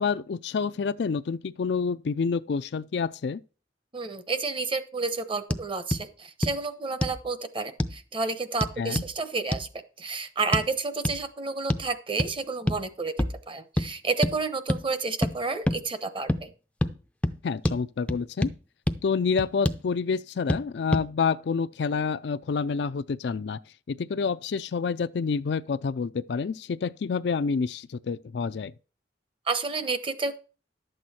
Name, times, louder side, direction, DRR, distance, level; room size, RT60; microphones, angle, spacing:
voice 1, 0.0-3.4 8.8-9.0 17.4-18.5 19.0-23.6 23.9-28.7, left 5 dB, 65° left, 0.4 m, -28 dB
voice 2, 3.9-9.7 10.0-13.1 13.5-16.5 29.5-30.4, right 4 dB, 30° right, 0.9 m, -30 dB
sound 1, 5.5-5.6 5.9-6.0 6.4-6.6 7.0-7.2 7.8-8.0 8.6-9.1 9.5-9.7 10.5-10.7 11.0-11.2 11.7-11.9 12.2-12.3 12.7-12.8 13.2-13.4 13.8-13.9 14.2-14.4 14.7-14.8 15.2-15.3 15.7-15.8 16.3-16.4 16.8-16.9 17.2-17.4 17.6-17.8 18.1-18.5 18.9-19.0 19.4-19.8 20.5-20.6 20.9-21.1, left 1 dB, 5° left, 0.5 m, -26 dB
11.5 x 7.8 x 4.3 m
head